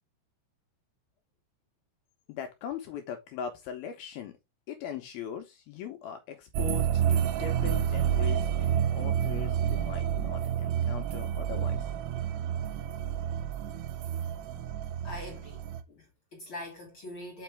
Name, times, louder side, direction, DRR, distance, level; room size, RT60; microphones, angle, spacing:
voice 1, 2.3-4.3 4.7-11.9, left 8 dB, 75° left, 2.4 m, -40 dB
sound 1, 6.5-15.8, right 9 dB, 90° right, 2.8 m, -29 dB
voice 2, 15.0-17.4, left 1 dB, 50° left, 1.5 m, -43 dB
6.9 x 5.1 x 3.4 m
omnidirectional pair, 4.9 m